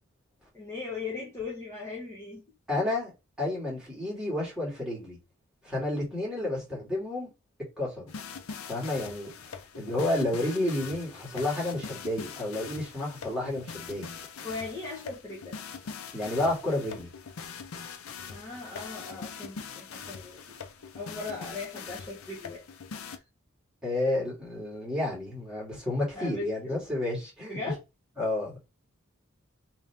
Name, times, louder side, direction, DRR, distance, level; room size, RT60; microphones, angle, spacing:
voice 1, 0.5-2.4 14.4-15.6 18.3-20.6 21.0-22.6 23.1-23.2 26.1-26.5 27.5-27.7, left 3 dB, 15° left, 1.0 m, -38 dB
voice 2, 2.7-3.1 3.4-5.2 5.6-7.3 7.8-8.1 8.7-9.3 9.7-14.1 16.1-17.1 23.8-27.6 28.2-28.6, left 1 dB, 5° right, 2.2 m, -30 dB
sound 1, 8.1-23.2, left 6 dB, 80° left, 0.6 m, -42 dB
3.5 x 2.9 x 3.4 m
head